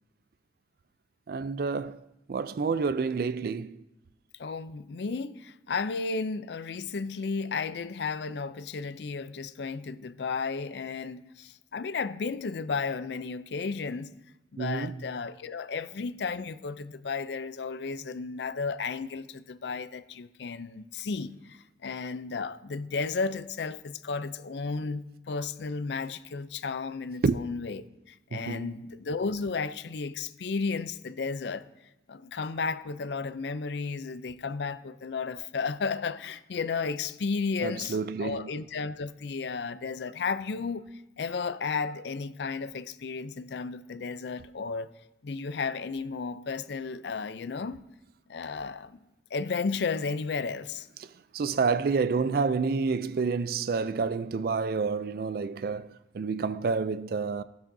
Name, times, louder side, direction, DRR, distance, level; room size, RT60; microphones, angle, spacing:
voice 1, 1.3-2.0 2.3-3.8 14.6-15.0 27.2-27.4 28.3-28.7 37.6-38.5 51.0-57.4, right 4 dB, 55° right, 0.4 m, -29 dB
voice 2, 4.4-14.1 14.5-31.7 32.1-40.8 41.2-44.9 45.2-47.8 48.3-49.0 49.3-50.9, left 4 dB, 70° left, 0.5 m, -33 dB
15.5 x 10.5 x 2.7 m
head